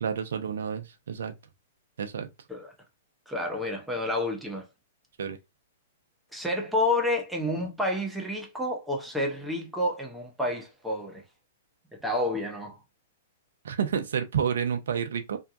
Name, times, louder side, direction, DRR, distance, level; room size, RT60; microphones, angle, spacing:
voice 1, 0.0-1.3 2.0-2.3 5.2-5.4 13.6-15.4, right 7 dB, 75° right, 0.6 m, -29 dB
voice 2, 3.3-4.7 6.3-11.2 11.9-12.8, left 1 dB, 5° right, 0.7 m, -29 dB
2.8 x 2.2 x 2.5 m
hypercardioid pair, 130°, 0 cm